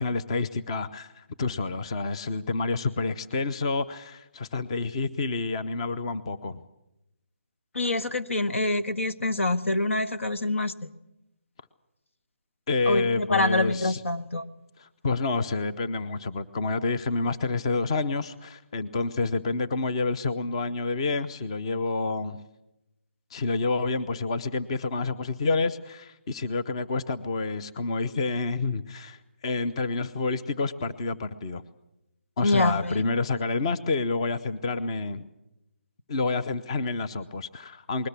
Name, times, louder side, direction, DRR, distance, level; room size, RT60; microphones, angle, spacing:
voice 1, 0.0-6.6 12.7-14.0 14.8-22.4 23.3-31.6 32.4-35.2 36.1-38.1, left 3 dB, 25° left, 11 dB, 0.7 m, -28 dB
voice 2, 7.7-10.9 12.8-14.5 32.4-33.0, left 2 dB, 85° left, 13 dB, 1.5 m, -26 dB
21.0 x 19.5 x 8.3 m, 0.88 s
hypercardioid pair, 170°, 7 cm